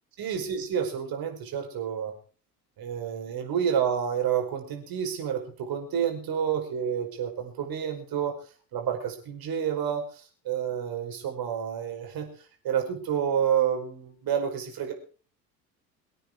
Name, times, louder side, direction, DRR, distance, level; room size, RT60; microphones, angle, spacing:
voice 1, 0.2-2.1 2.8-8.4 8.7-12.3 12.6-14.9, right 8 dB, 45° right, 3 dB, 5.2 m, -29 dB
23.5 x 9.2 x 4.7 m, 0.39 s
figure-of-eight pair, 65°, 49 cm